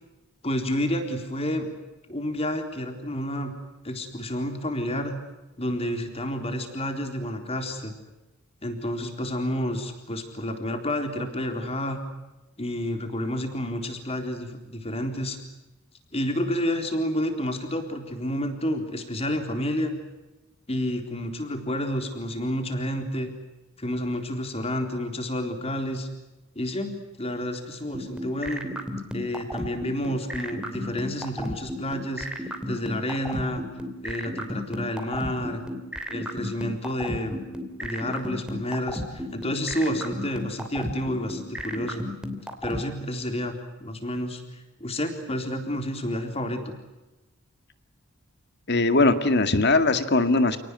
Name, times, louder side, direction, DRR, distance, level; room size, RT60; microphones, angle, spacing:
voice 1, 0.4-1.7 2.1-3.5 3.8-5.2 5.6-7.9 8.6-12.0 12.6-15.4 16.1-19.9 20.7-23.3 23.8-26.1 26.6-28.7 29.1-32.3 32.7-33.7 34.0-35.6 36.1-37.4 37.8-42.0 42.6-44.4 44.8-46.7, left 1 dB, 30° left, 6 dB, 3.9 m, -30 dB
sound 1, 27.9-42.8, equal, 5° right, 2.8 m, -32 dB
voice 2, 48.7-50.6, left 2 dB, 50° left, 10 dB, 2.1 m, -20 dB
29.5 x 19.0 x 9.7 m, 1.0 s
head